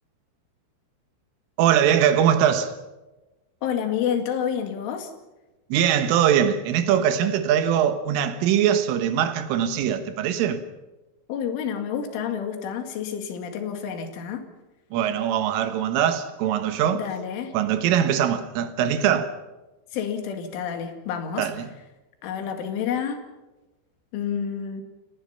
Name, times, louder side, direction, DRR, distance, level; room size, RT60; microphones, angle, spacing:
voice 1, 1.6-2.8 5.7-10.6 14.9-17.0 17.5-19.3 21.4-21.7, right 9 dB, 85° right, 4.1 m, -22 dB
voice 2, 3.6-5.1 11.3-14.5 16.9-17.6 19.9-21.5 22.2-23.2 24.1-24.8, left 8 dB, 80° left, 4.6 m, -29 dB
30.0 x 18.5 x 5.8 m
omnidirectional pair, 5.6 m